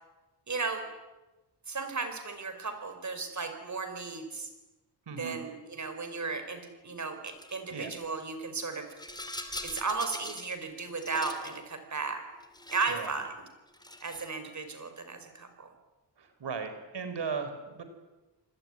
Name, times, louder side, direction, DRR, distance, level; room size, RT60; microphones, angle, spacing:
voice 1, 0.5-0.9 1.7-4.5 5.1-8.9 9.6-12.2 12.7-13.3 14.0-15.7, right 4 dB, 45° right, 7 dB, 5.1 m, -35 dB
voice 2, 5.1-5.4 7.7-7.9 12.9-13.1 16.2-17.8, right 5 dB, 85° right, 8 dB, 4.8 m, -37 dB
Rattle, 7.2-7.6 8.6-10.6 10.9-11.6 12.4-13.1 13.7-14.3, left 1 dB, 10° left, 2.8 m, -42 dB
28.0 x 21.0 x 9.9 m, 1.1 s
wide cardioid pair, 150°, 41 cm